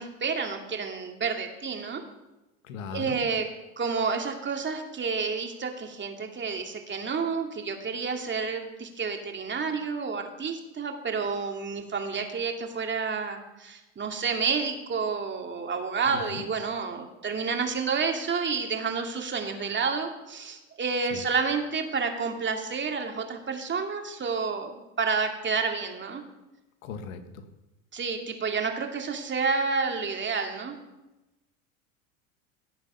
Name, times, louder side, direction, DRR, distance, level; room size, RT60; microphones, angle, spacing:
voice 1, 0.0-2.0 2.9-3.4 3.8-26.2 27.9-30.7, right 5 dB, 30° right, 3 dB, 2.6 m, -30 dB
voice 2, 2.6-3.2 16.1-16.5 21.1-21.2 26.8-27.4, left 5 dB, 75° left, 8 dB, 1.8 m, -38 dB
17.5 x 8.0 x 5.8 m, 1.0 s
hypercardioid pair, 85°, 40 cm